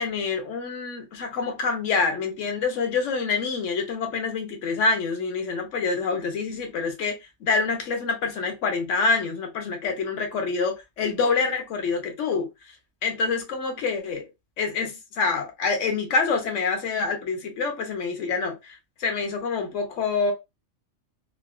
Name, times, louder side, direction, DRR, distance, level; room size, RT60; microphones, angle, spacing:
voice 1, 0.0-12.5 13.0-14.3 14.6-20.3, left 4 dB, 65° left, 1.1 m, -26 dB
3.8 x 2.3 x 2.3 m
omnidirectional pair, 1.4 m